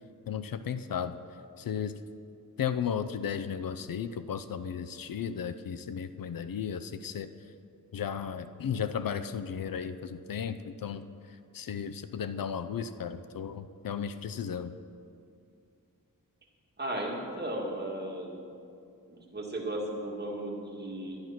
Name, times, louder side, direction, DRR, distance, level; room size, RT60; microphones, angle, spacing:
voice 1, 0.3-1.2 1.6-1.9 2.6-7.3 7.9-11.0 11.5-14.7, left 7 dB, 75° left, 11 dB, 0.6 m, -34 dB
voice 2, 16.8-18.4 19.1-21.2, right 1 dB, 30° right, -2 dB, 2.2 m, -35 dB
11.5 x 11.0 x 6.0 m, 2.4 s
wide cardioid pair, 130°, 34 cm